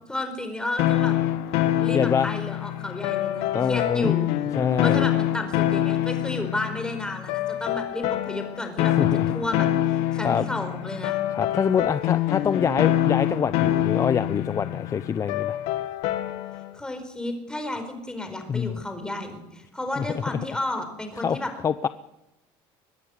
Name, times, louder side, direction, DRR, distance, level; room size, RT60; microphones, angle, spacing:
voice 1, 0.1-1.1 1.8-4.3 4.8-11.2 16.7-21.5, left 2 dB, 5° left, 6 dB, 4.5 m, -32 dB
sound 1, 0.8-16.7, left 13 dB, 80° left, 1.7 m, -25 dB
voice 2, 1.9-2.3 3.5-4.1 4.6-5.1 9.0-9.3 10.2-10.5 11.3-15.6 18.5-18.8 20.0-20.1 20.3-20.4 21.2-21.4 21.6-21.9, left 7 dB, 30° left, 13 dB, 0.7 m, -25 dB
22.5 x 12.5 x 9.6 m, 0.97 s
cardioid pair, 125°, 11 cm